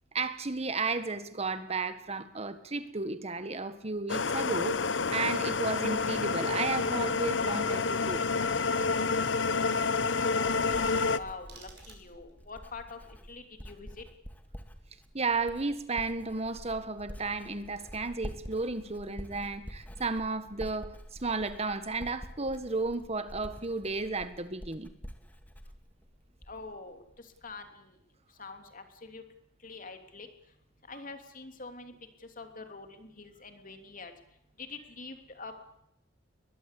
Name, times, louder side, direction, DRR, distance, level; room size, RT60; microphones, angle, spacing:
voice 1, 0.1-8.2 15.1-24.9, right 3 dB, 35° right, 11 dB, 1.5 m, -33 dB
sound 1, 4.1-11.2, left 4 dB, 70° left, 0.9 m, -29 dB
voice 2, 10.1-13.0 13.3-14.0 26.5-27.9 28.4-29.2 29.6-30.3 30.9-31.9 32.4-34.1 34.6-35.5, left 3 dB, 45° left, 6 dB, 3.1 m, -45 dB
Writing, 10.3-26.8 27.1-27.5, equal, 10° left, 2.1 m, -47 dB
sound 2, 11.3-12.5, right 7 dB, 60° right, 6.7 m, -56 dB
21.5 x 21.5 x 8.5 m, 0.78 s
head